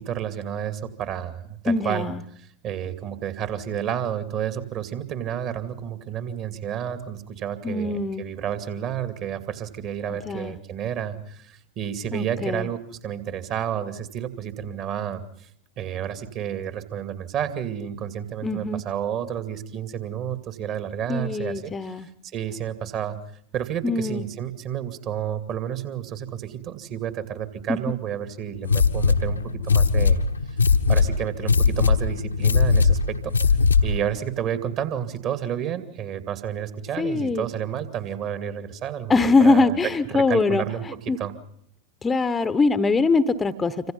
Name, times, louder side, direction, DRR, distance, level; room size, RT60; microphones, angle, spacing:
voice 1, 0.0-2.1 2.6-15.5 15.8-21.9 22.3-23.2 23.5-30.2 30.9-33.3 33.8-39.1 39.4-39.8 40.1-41.3, right 9 dB, 35° right, 10 dB, 2.5 m, -30 dB
voice 2, 1.7-2.2 7.6-8.2 10.3-10.5 12.1-12.7 18.4-18.8 21.1-22.1 23.8-24.2 27.7-27.8 37.0-37.5 39.1-40.6 41.1-41.2 42.0-43.9, left 3 dB, 15° left, 14 dB, 1.1 m, -22 dB
sound 1, 28.6-34.1, left 4 dB, 80° left, 1.3 m, -20 dB
27.0 x 25.5 x 5.6 m, 0.70 s
figure-of-eight pair, 90°, 0 cm